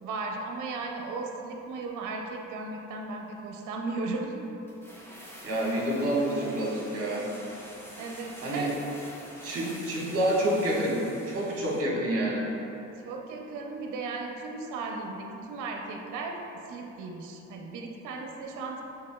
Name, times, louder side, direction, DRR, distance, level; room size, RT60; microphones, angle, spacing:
voice 1, 0.0-4.4 8.0-8.7 9.5-9.8 13.0-16.4 16.7-18.8, right 3 dB, 80° right, 1 dB, 0.6 m, -36 dB
sound 1, 4.7-12.0 12.2-12.3, equal, 10° left, 0.8 m, -47 dB
voice 2, 5.4-7.3 8.4-8.7 9.4-12.4, right 1 dB, 50° right, -5 dB, 1.3 m, -28 dB
6.6 x 3.3 x 2.2 m, 2.9 s
cardioid pair, 90°, 30 cm